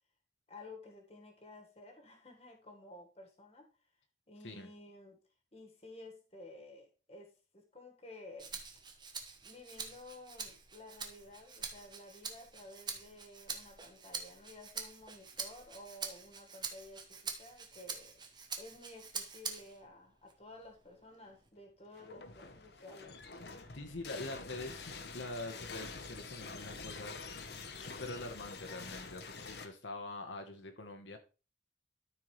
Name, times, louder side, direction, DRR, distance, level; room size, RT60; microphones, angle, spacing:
voice 1, 0.5-3.7 4.3-5.2 5.5-8.6 9.4-18.2 18.6-23.2, left 2 dB, 35° left, 1.6 m, -53 dB
Rattle (instrument), 8.4-19.8 20.3-21.5, right 5 dB, 25° right, 0.9 m, -45 dB
sound 1, 21.9-29.7, left 4 dB, 60° left, 0.9 m, -47 dB
voice 2, 23.7-27.1 27.7-31.2, left 2 dB, 85° left, 1.2 m, -44 dB
13.0 x 4.6 x 3.2 m
head